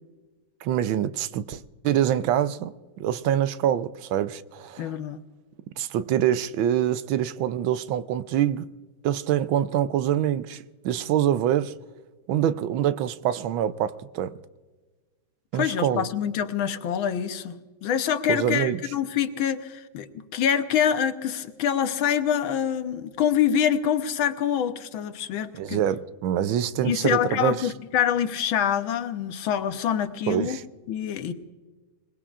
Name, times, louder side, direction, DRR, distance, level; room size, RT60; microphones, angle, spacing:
voice 1, 0.6-4.9 5.8-8.7 9.0-11.7 12.3-14.3 15.5-16.1 18.3-18.8 25.6-27.6 30.3-30.6, right 10 dB, 80° right, 1.4 m, -25 dB
voice 2, 4.8-5.2 15.5-25.8 26.8-30.6 30.9-31.3, left 9 dB, 80° left, 1.7 m, -26 dB
26.0 x 19.5 x 2.5 m
omnidirectional pair, 2.2 m